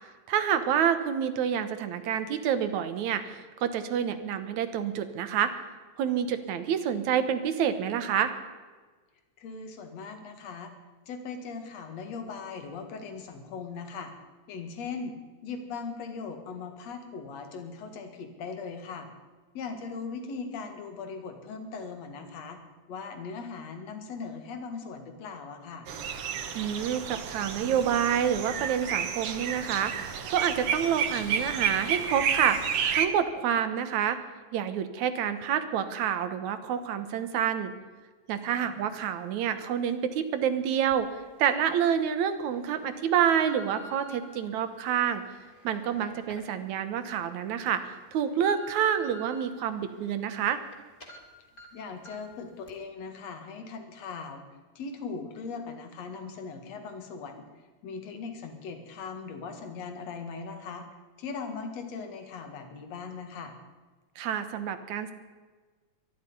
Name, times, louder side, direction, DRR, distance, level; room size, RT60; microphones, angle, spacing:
voice 1, 0.3-5.5 6.0-8.3 26.5-32.6 32.9-34.2 34.5-37.7 38.3-45.2 45.6-47.8 48.1-50.6 64.2-65.1, right 8 dB, 80° right, 10 dB, 2.5 m, -28 dB
voice 2, 9.4-10.7 11.1-14.1 14.5-15.1 15.4-19.1 19.5-22.6 22.9-25.9 38.6-38.8 46.0-46.1 51.7-54.4 54.8-60.9 61.2-63.5, left 5 dB, 65° left, 6 dB, 2.9 m, -39 dB
sound 1, 25.9-33.1, right 7 dB, 60° right, 1.9 m, -31 dB
sound 2, 40.9-41.0 41.6-41.9 42.6-44.2 44.9-47.2 47.6-47.7 48.1-49.4 49.9-50.7 51.0-51.2 51.6-51.7 52.1-52.3 52.7-52.8, equal, 25° left, 3.3 m, -49 dB
24.0 x 11.0 x 5.5 m, 1.4 s
omnidirectional pair, 3.3 m